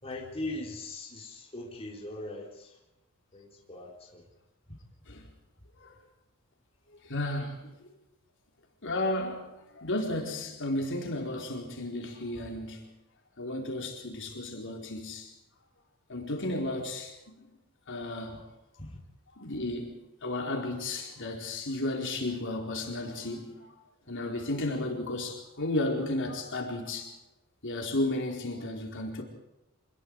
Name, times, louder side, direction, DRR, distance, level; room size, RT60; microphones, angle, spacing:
voice 1, 0.0-2.8 3.3-4.2 18.8-19.0, left 2 dB, 25° left, 3.8 m, -40 dB
voice 2, 7.1-7.7 8.8-12.9 13.4-15.3 16.1-17.1 17.9-18.5 19.3-19.9 20.2-23.7 24.1-27.1 27.6-29.2, left 1 dB, 60° left, 4.4 m, -33 dB
27.0 x 21.0 x 4.9 m
head